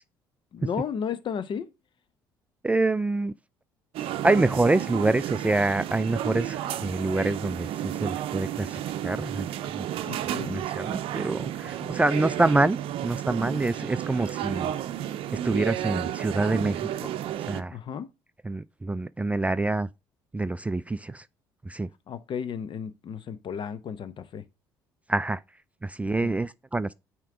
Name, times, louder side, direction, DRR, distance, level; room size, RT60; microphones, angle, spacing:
voice 1, 0.5-1.7 10.0-10.6 11.8-11.9 17.7-18.1 22.1-24.5 26.2-26.3, left 7 dB, 50° left, 0.8 m, -34 dB
voice 2, 2.6-3.3 4.2-9.9 10.5-12.8 13.0-14.7 15.3-17.1 17.4-17.8 18.4-19.9 20.3-21.3 21.6-21.9 25.1-25.4 25.8-26.9, right 2 dB, 15° right, 0.3 m, -26 dB
sound 1, 3.9-17.6, right 12 dB, 60° right, 0.6 m, -32 dB
9.1 x 3.0 x 4.8 m
hypercardioid pair, 60°, 10 cm